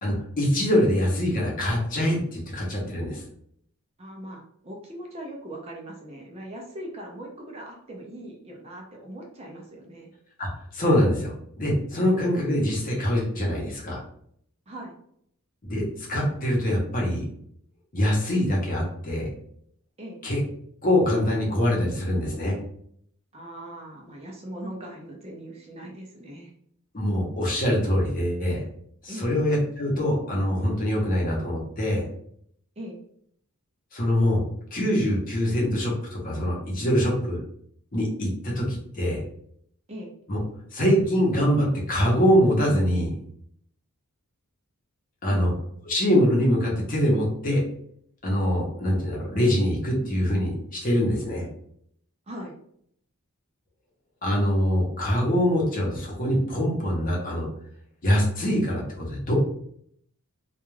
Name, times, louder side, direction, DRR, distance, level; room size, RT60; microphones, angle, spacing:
voice 1, 0.0-3.2 10.4-10.5 10.7-14.0 15.6-17.2 17.9-19.3 20.2-20.4 20.8-22.6 26.9-28.6 29.0-32.0 33.9-34.4 34.7-37.4 37.9-39.2 40.3-40.4 40.7-43.1 45.2-45.5 45.9-47.6 48.2-51.5 54.2-57.5 58.0-59.3, equal, 40° left, -2 dB, 0.7 m, -24 dB
voice 2, 4.0-10.1 14.7-14.9 20.0-20.2 23.3-26.5 29.1-29.3 32.8-33.0 39.9-40.1 45.2-45.5 52.3-52.5, right 1 dB, 30° right, 0 dB, 0.4 m, -40 dB
2.3 x 2.3 x 3.1 m, 0.68 s
head